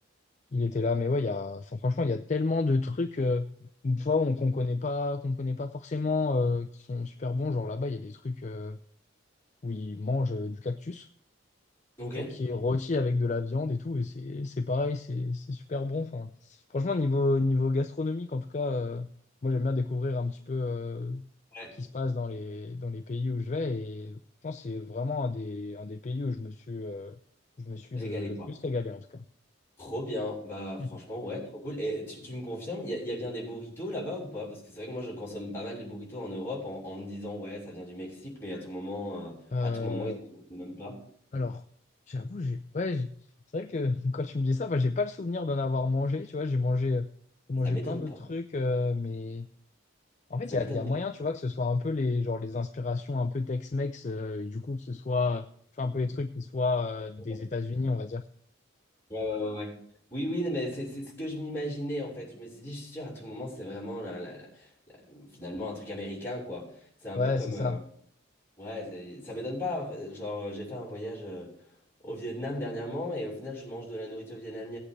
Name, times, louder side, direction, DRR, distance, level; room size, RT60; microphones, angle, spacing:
voice 1, 0.5-3.5 3.8-8.8 9.6-11.1 12.2-19.1 19.4-21.2 21.8-27.2 27.6-29.2 30.8-30.9 39.5-40.2 41.3-41.6 42.1-43.1 43.5-47.1 47.5-49.5 50.3-55.4 55.8-58.2 67.2-67.8, left 3 dB, 35° left, 7 dB, 0.4 m, -30 dB
voice 2, 12.0-12.3 21.5-21.8 27.9-28.5 29.8-41.0 47.5-48.2 50.5-51.0 57.3-57.4 59.1-59.7 60.1-66.7 67.0-67.8 68.6-71.5 72.0-74.8, left 1 dB, 10° left, -7 dB, 6.1 m, -36 dB
18.0 x 8.6 x 3.3 m, 0.63 s
head